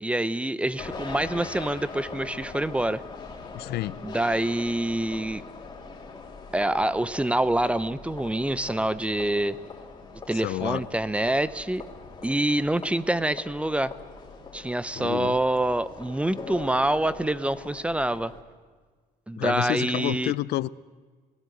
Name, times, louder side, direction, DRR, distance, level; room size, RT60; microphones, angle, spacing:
voice 1, 0.0-3.0 4.0-5.4 6.5-9.6 10.3-11.8 12.2-13.9 14.5-18.3 19.3-20.3, right 1 dB, 5° right, 0.7 m, -26 dB
sound 1, 0.8-18.4, left 4 dB, 25° left, 3.6 m, -42 dB
voice 2, 3.5-4.1 10.3-10.9 14.9-15.4 19.4-20.7, left 16 dB, 75° left, 0.6 m, -29 dB
20.5 x 17.0 x 8.0 m
cardioid pair, 110°, 17 cm